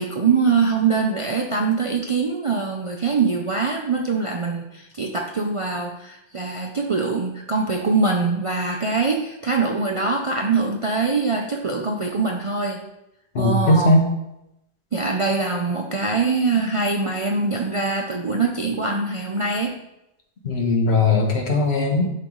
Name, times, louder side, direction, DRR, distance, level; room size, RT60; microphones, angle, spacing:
voice 1, 0.0-12.8 13.4-14.0 14.9-19.7, right 4 dB, 45° right, 1 dB, 0.4 m, -23 dB
voice 2, 13.3-14.1 20.4-22.1, left 2 dB, 65° left, 1 dB, 1.4 m, -19 dB
10.5 x 3.9 x 3.1 m, 0.86 s
omnidirectional pair, 1.2 m